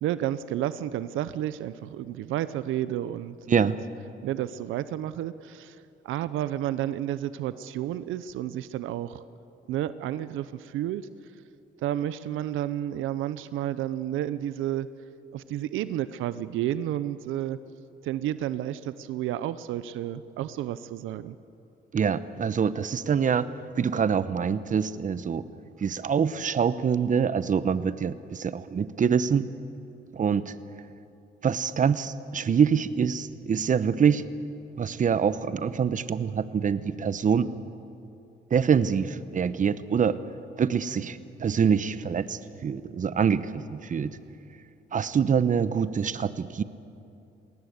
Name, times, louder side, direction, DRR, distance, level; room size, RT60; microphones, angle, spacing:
voice 1, 0.0-3.7 4.2-5.8 6.0-9.2 9.7-11.1 11.8-14.9 15.3-17.6 18.0-21.4, right 12 dB, 85° right, 15 dB, 0.7 m, -31 dB
voice 2, 21.9-23.5 23.8-25.4 25.8-29.5 30.1-30.5 31.4-34.3 34.8-37.5 38.5-40.2 40.6-44.2 44.9-46.6, right 7 dB, 40° right, 14 dB, 0.9 m, -25 dB
21.0 x 18.5 x 8.1 m, 2.6 s
cardioid pair, 90°, 20 cm